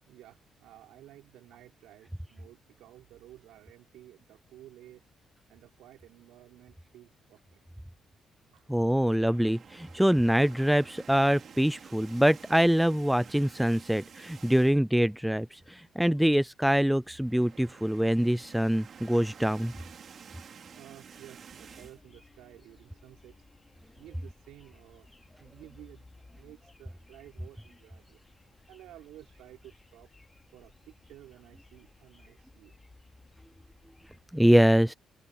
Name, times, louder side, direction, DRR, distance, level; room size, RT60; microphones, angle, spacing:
voice 1, 0.1-5.0 5.5-7.6 8.5-9.0 19.8-20.0 20.7-23.4 23.8-28.2 28.7-30.1 30.5-32.7, right 14 dB, 90° right, 5.6 m, -54 dB
voice 2, 8.7-19.7 34.3-34.9, equal, 5° right, 0.5 m, -24 dB
sound 1, 9.2-15.0 15.4-15.5 15.8-15.9 17.0-22.0, right 7 dB, 55° right, 3.8 m, -51 dB
sound 2, 21.5-34.2, left 2 dB, 20° left, 4.2 m, -59 dB
cardioid pair, 90°, 0 cm